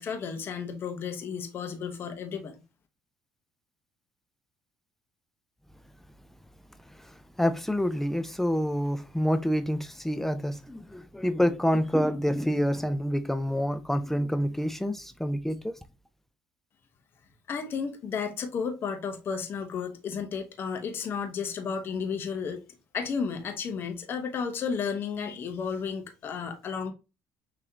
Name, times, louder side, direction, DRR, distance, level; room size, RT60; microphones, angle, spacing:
voice 1, 0.0-2.5 17.5-22.6 22.9-26.9, left 6 dB, 50° left, 1.1 m, -33 dB
voice 2, 6.9-15.7, equal, 5° left, 0.5 m, -27 dB
5.9 x 3.1 x 2.8 m
supercardioid pair, 80°, 5 cm